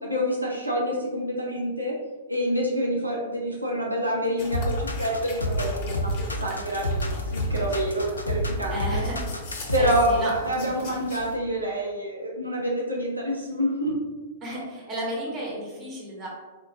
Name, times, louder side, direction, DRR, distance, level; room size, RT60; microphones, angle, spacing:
voice 1, 0.0-1.9 2.3-6.1 6.4-9.0 9.7-13.9, equal, 85° right, -3 dB, 0.5 m, -27 dB
sound 1, 4.4-11.3, left 2 dB, 45° left, 0.7 m, -41 dB
sound 2, 4.5-10.2, equal, 80° left, 0.4 m, -28 dB
voice 2, 8.7-9.2 9.5-10.3 14.4-16.3, right 1 dB, 25° right, -5 dB, 1.2 m, -33 dB
3.6 x 2.4 x 2.7 m, 1.3 s
figure-of-eight pair, 105°, 0 cm